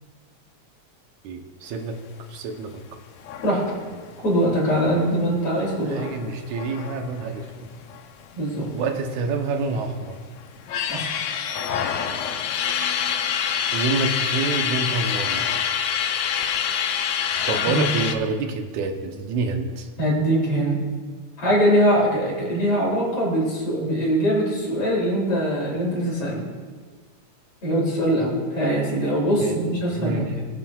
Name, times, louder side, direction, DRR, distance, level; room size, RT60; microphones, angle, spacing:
voice 1, 1.2-2.0 2.3-2.7 5.8-7.5 8.7-10.2 13.7-15.4 17.5-19.9 29.4-30.3, right 4 dB, 85° right, 4 dB, 2.2 m, -27 dB
sound 1, 3.2-8.3 8.6-8.7 9.0-9.9 10.4-18.1, left 8 dB, 80° left, 2.0 m, -27 dB
voice 2, 4.2-6.1 8.4-8.7 10.9-11.1 17.7-17.9 20.0-20.8 21.4-26.5 27.6-30.4, equal, 50° left, -4 dB, 3.7 m, -22 dB
20.5 x 7.5 x 2.3 m, 1.5 s
omnidirectional pair, 3.3 m